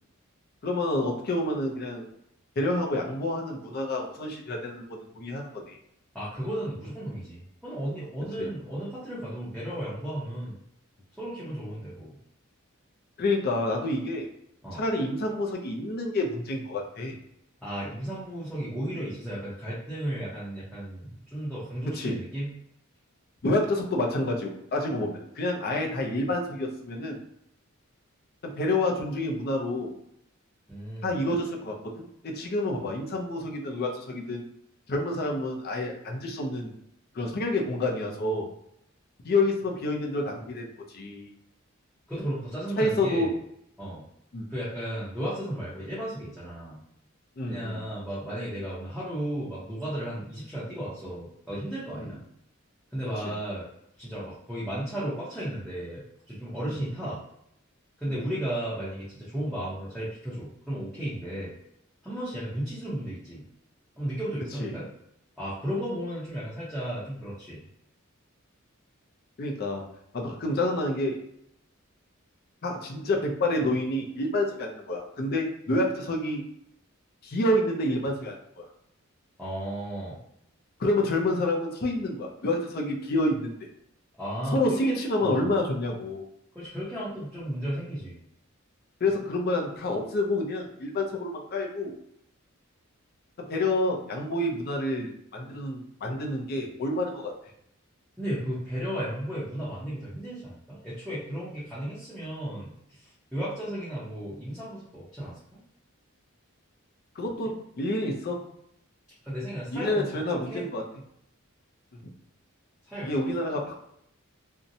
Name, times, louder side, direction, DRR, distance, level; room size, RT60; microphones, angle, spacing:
voice 1, 0.6-2.1 2.6-5.8 8.4-8.5 13.2-14.3 14.7-17.1 21.9-22.2 23.4-27.2 28.4-29.9 31.0-34.4 34.9-36.7 37.1-38.5 39.2-41.3 42.8-43.3 44.3-44.5 47.4-47.8 52.0-52.2 58.1-58.2 64.6-64.7 69.4-69.9 70.1-71.2 72.6-76.4 77.2-78.6 80.8-83.5 84.5-86.3 89.0-91.9 93.4-97.3 107.2-108.4 109.7-110.8 113.0-113.7, left 1 dB, 50° left, 1 dB, 0.5 m, -28 dB
voice 2, 6.1-10.5 11.1-12.2 14.6-14.8 17.6-22.5 30.7-31.2 42.1-43.3 43.8-44.1 44.5-46.8 47.4-52.2 52.9-53.7 54.0-57.2 58.0-61.5 62.0-63.4 64.0-64.9 65.4-67.6 79.4-80.2 84.2-85.5 86.5-88.2 98.2-105.4 109.2-110.7 112.9-113.5, right 1 dB, ahead, -10 dB, 0.7 m, -34 dB
2.7 x 2.1 x 2.6 m, 0.74 s
head